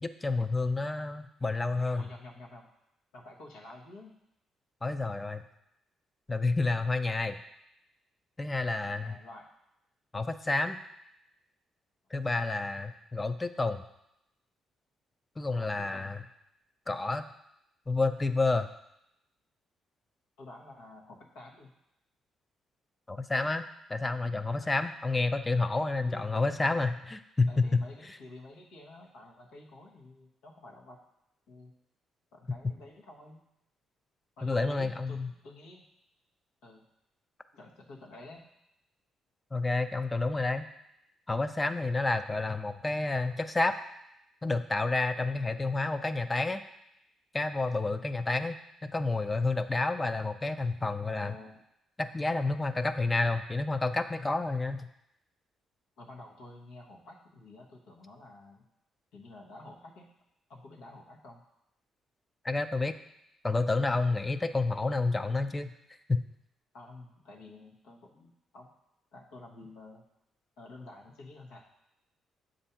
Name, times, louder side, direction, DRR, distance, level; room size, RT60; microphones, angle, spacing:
voice 1, 0.0-2.0 4.8-5.4 6.3-7.4 8.4-9.2 10.1-10.8 12.1-13.8 15.4-16.2 16.9-17.2 17.9-18.7 23.1-27.8 34.4-35.3 39.5-40.7 41.3-43.7 44.4-46.6 47.3-51.3 52.0-54.9 62.4-62.9 63.4-65.7 66.1-66.2, left 3 dB, 20° left, 10 dB, 0.4 m, -29 dB
voice 2, 2.0-2.7 3.1-4.2 8.8-9.5 12.1-12.5 15.5-16.2 20.4-21.7 24.6-24.8 26.0-26.4 27.5-31.0 31.5-31.7 32.3-33.4 34.4-35.8 36.6-36.9 37.5-38.5 51.0-51.6 56.0-58.7 59.1-60.1 60.5-61.4 64.2-64.5 66.7-68.7 69.1-70.0 70.6-71.6, left 2 dB, 90° left, -2 dB, 1.1 m, -50 dB
7.1 x 2.6 x 5.6 m, 0.82 s
cardioid pair, 90°, 0 cm